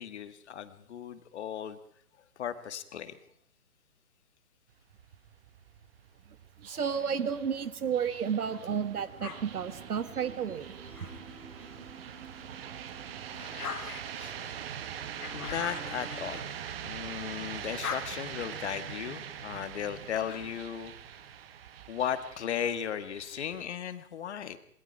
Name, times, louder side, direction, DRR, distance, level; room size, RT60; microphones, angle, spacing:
voice 1, 0.0-1.8 2.4-3.2 14.1-14.4 15.3-20.9 21.9-24.6, left 9 dB, 45° left, 11 dB, 2.0 m, -36 dB
sound 1, 4.7-23.7, right 9 dB, 40° right, 1.7 m, -43 dB
voice 2, 6.6-10.7, right 7 dB, 65° right, 13 dB, 1.9 m, -32 dB
sound 2, 9.2-11.9 12.4-17.2 17.5-20.8, left 6 dB, 70° left, 3.2 m, -45 dB
sound 3, 9.5-16.3, equal, ahead, 4.2 m, -55 dB
27.0 x 21.5 x 4.7 m, 0.65 s
hypercardioid pair, 145°, 47 cm